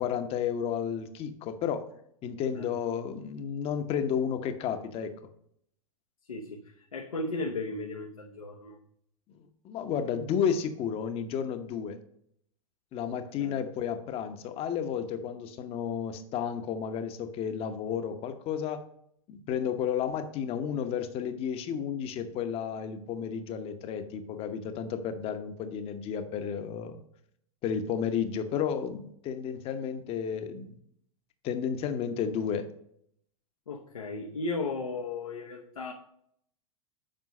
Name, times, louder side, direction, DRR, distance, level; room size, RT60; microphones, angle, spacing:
voice 1, 0.0-1.8 2.2-5.1 9.6-12.0 12.9-18.8 19.3-27.0 27.6-30.7 31.4-32.7, left 8 dB, 35° left, 9 dB, 0.9 m, -32 dB
voice 2, 6.3-8.8 13.1-13.6 33.7-35.9, left 3 dB, 75° left, 1 dB, 0.9 m, -36 dB
7.7 x 5.5 x 5.2 m, 0.69 s
figure-of-eight pair, 95°, 18 cm